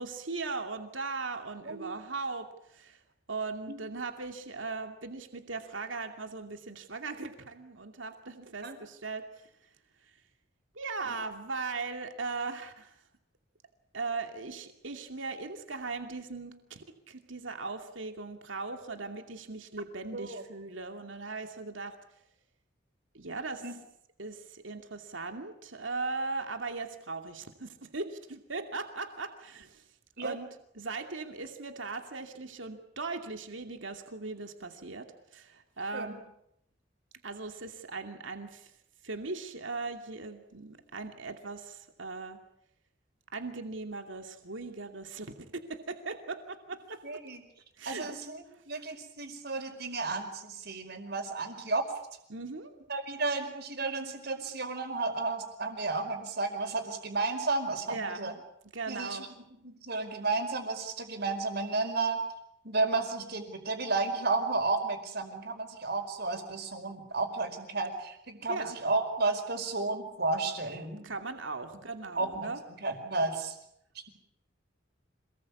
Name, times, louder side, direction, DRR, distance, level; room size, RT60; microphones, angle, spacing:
voice 1, 0.0-3.0 3.3-9.5 10.1-10.2 10.7-13.0 13.9-22.0 23.1-23.6 24.2-29.8 30.2-30.5 30.7-36.2 37.2-38.7 39.0-42.4 43.3-45.3 45.7-47.2 47.8-48.2 52.3-52.7 57.9-58.4 58.7-59.3 68.5-68.7 71.0-72.6, right 3 dB, 80° right, 5 dB, 2.6 m, -39 dB
voice 2, 20.1-20.4 23.6-23.7 30.2-30.4 35.9-36.2 47.0-47.4 47.8-51.8 52.9-58.3 58.9-59.3 59.6-62.2 62.6-71.1 72.2-72.5 72.8-73.6, right 3 dB, 55° right, 6 dB, 5.0 m, -32 dB
27.0 x 20.0 x 8.4 m, 0.76 s
head